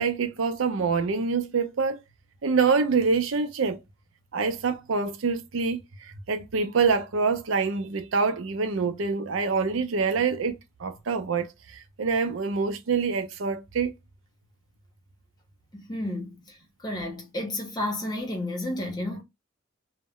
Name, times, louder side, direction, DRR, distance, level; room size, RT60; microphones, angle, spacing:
voice 1, 0.0-2.0 2.4-3.8 4.3-10.5 10.8-13.9, right 5 dB, 75° right, 0.5 m, -26 dB
voice 2, 15.7-19.2, left 1 dB, 20° left, 0.7 m, -32 dB
2.1 x 2.1 x 3.5 m
head